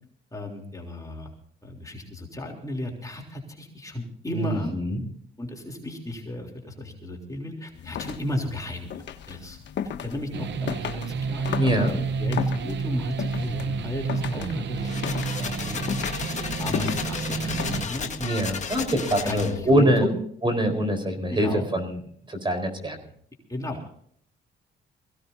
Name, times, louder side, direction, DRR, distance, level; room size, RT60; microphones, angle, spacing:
voice 1, 0.3-1.3 1.6-4.7 5.4-9.6 9.8-15.8 16.6-18.1 19.1-20.2 21.3-21.7 23.5-23.9, left 1 dB, 15° left, 0 dB, 3.4 m, -34 dB
voice 2, 4.3-5.0 11.6-11.9 18.2-20.1 20.4-22.0 22.3-23.0, equal, 25° right, 6 dB, 4.4 m, -24 dB
sound 1, 7.7-18.3, left 8 dB, 65° left, 1.3 m, -35 dB
sound 2, 10.3-17.8, right 5 dB, 65° right, 0.9 m, -30 dB
sound 3, 14.7-19.7, left 6 dB, 35° left, 1.7 m, -34 dB
22.5 x 16.5 x 2.7 m, 0.62 s
cardioid pair, 90°, 20 cm